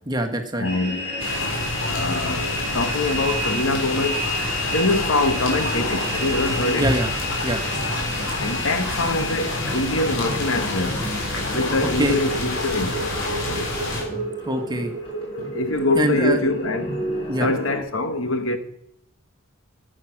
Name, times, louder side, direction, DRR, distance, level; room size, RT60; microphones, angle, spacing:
voice 1, 0.1-0.7 6.7-7.1 7.4-7.6 12.0-12.2 13.9-14.9 15.9-16.4 17.3-17.5, right 1 dB, 20° right, 1.4 m, -24 dB
voice 2, 0.6-1.0 1.8-4.2 4.7-6.9 8.3-11.0 11.5-12.9 15.5-16.9 17.4-18.6, left 2 dB, 90° left, 1.5 m, -24 dB
sound 1, 0.6-17.8, equal, 30° left, 4.8 m, -31 dB
sound 2, 1.2-14.0, left 2 dB, 65° left, 3.6 m, -28 dB
14.0 x 7.7 x 6.0 m
head